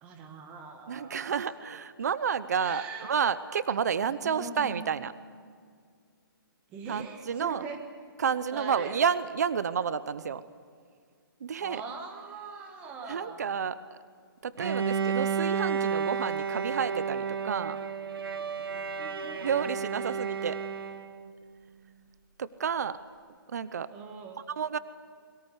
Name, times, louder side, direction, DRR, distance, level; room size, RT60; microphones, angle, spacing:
voice 1, 0.0-1.5 2.6-3.3 4.2-5.0 6.7-7.8 8.5-9.0 11.6-13.5 19.0-19.4 23.9-24.6, right 4 dB, 10° right, 4 dB, 1.5 m, -42 dB
voice 2, 0.9-5.1 6.9-7.6 8.2-10.4 11.4-11.8 13.1-13.8 14.4-17.8 19.4-20.6 22.4-23.0 23.5-23.9 24.5-24.8, right 7 dB, 45° right, 15 dB, 0.8 m, -30 dB
Bowed string instrument, 14.6-21.3, right 6 dB, 80° right, 1.5 m, -32 dB
22.5 x 17.0 x 9.9 m, 2.1 s
hypercardioid pair, 180°, 12 cm